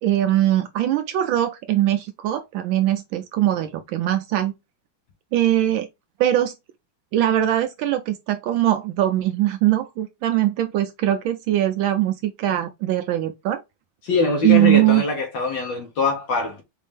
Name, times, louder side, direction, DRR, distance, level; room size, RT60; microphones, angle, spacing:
voice 1, 0.0-4.5 5.3-5.9 6.2-6.5 7.1-13.6 14.4-15.0, right 13 dB, 80° right, 1.3 m, -21 dB
voice 2, 14.0-16.6, left 3 dB, 70° left, 1.6 m, -23 dB
5.0 x 2.7 x 3.3 m
omnidirectional pair, 2.2 m